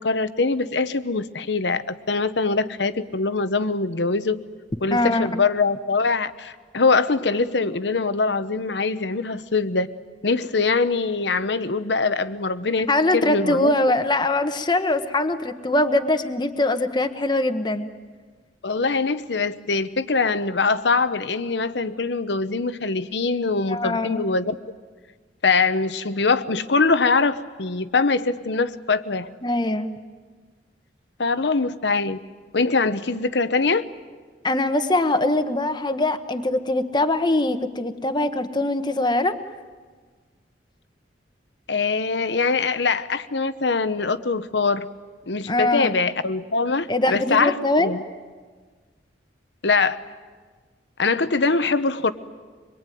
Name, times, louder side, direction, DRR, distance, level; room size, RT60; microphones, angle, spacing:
voice 1, 0.0-4.4 4.8-9.9 10.2-14.0 18.6-24.5 25.4-29.3 31.2-32.2 32.5-33.8 41.7-44.9 45.3-48.0 49.6-50.0 51.0-52.1, left 4 dB, 80° left, 12 dB, 1.0 m, -23 dB
voice 2, 4.9-5.3 12.9-17.9 23.7-24.2 29.4-29.9 34.4-39.3 45.5-45.9 46.9-47.9, left 2 dB, 25° left, 8 dB, 1.2 m, -22 dB
25.0 x 22.5 x 9.3 m, 1.5 s
head